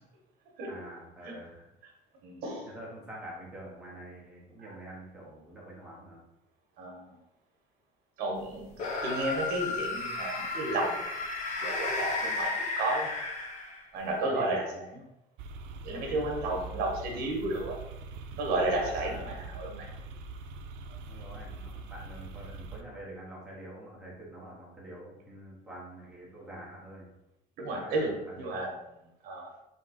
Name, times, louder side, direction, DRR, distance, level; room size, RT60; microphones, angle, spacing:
voice 1, 0.6-1.7 2.7-6.2 14.2-14.8 15.9-16.3 18.8-19.3 21.1-27.1 27.6-28.7, right 1 dB, 5° right, -6 dB, 1.0 m, -46 dB
voice 2, 2.2-2.7 4.6-4.8 6.8-7.2 8.2-8.7 9.0-11.0 11.6-13.1 13.9-14.7 14.9-15.0 15.8-17.8 18.4-19.9 27.6-28.7 29.2-29.5, right 2 dB, 55° right, 1 dB, 1.1 m, -32 dB
sound 1, 8.7-14.0, left 3 dB, 40° left, 0.7 m, -33 dB
sound 2, 15.4-22.8, right 3 dB, 85° right, 0.5 m, -43 dB
3.6 x 2.8 x 4.1 m, 0.89 s
cardioid pair, 175°, 18 cm